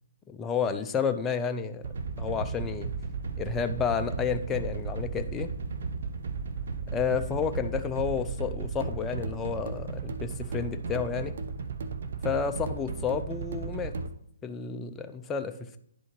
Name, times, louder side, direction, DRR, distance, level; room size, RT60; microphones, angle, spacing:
voice 1, 0.3-1.9 2.2-2.9 3.4-5.5 6.9-11.4 12.2-13.9 14.4-15.8, left 6 dB, 15° left, 7 dB, 0.4 m, -31 dB
sound 1, 1.8-14.1, right 4 dB, 60° right, 0.6 m, -35 dB
10.5 x 4.1 x 3.1 m, 0.69 s
hypercardioid pair, 140°, 0 cm